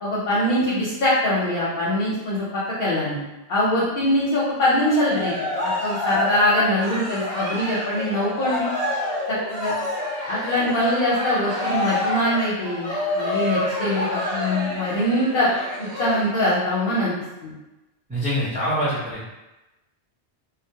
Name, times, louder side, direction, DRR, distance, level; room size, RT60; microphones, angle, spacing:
voice 1, 0.0-2.5 2.8-3.2 3.5-5.3 5.6-8.7 9.5-9.7 10.3-15.5 15.8-17.1 17.4-17.5, left 1 dB, 55° left, -7 dB, 0.7 m, -23 dB
Cheering, 4.8-16.5, left 1 dB, 65° right, 0.9 m, -28 dB
voice 2, 18.1-19.3, equal, 10° right, -10 dB, 0.4 m, -25 dB
2.2 x 2.1 x 2.7 m, 1.0 s
omnidirectional pair, 1.1 m